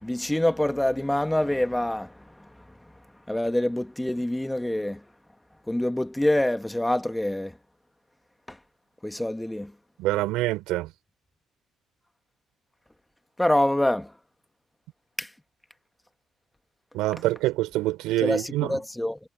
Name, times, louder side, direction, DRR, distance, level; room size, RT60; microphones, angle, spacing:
voice 1, 0.0-2.1 3.3-5.0 5.7-7.5 9.0-9.7 13.4-14.1 15.2-15.3 18.2-19.2, left 1 dB, 10° left, 1.9 m, -25 dB
voice 2, 10.0-10.9 16.9-18.8, right 17 dB, 80° right, 4.1 m, -26 dB
hypercardioid pair, 50°, 0 cm